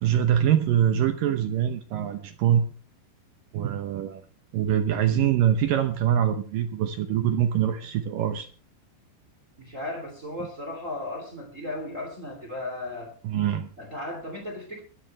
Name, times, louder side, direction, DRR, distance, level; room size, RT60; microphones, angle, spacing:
voice 1, 0.0-2.7 3.5-4.2 4.5-8.5 13.2-13.7, right 10 dB, 75° right, 8 dB, 2.1 m, -24 dB
voice 2, 9.6-13.1 13.8-14.8, left 2 dB, 20° right, 3 dB, 2.6 m, -35 dB
22.0 x 13.0 x 3.3 m, 0.36 s
omnidirectional pair, 4.9 m